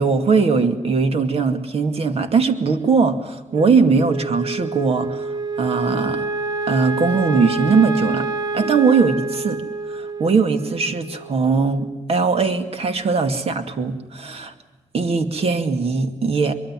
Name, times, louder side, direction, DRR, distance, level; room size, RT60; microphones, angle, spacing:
voice 1, 0.0-5.3 5.6-6.2 6.7-8.3 8.5-9.6 9.9-14.5 14.9-16.5, right 4 dB, 60° right, 8 dB, 2.4 m, -20 dB
Wind instrument woodwind instrument, 3.5-12.0, right 3 dB, 35° right, 2.1 m, -28 dB
23.5 x 23.0 x 7.6 m, 1.1 s
wide cardioid pair, 120°, 12 cm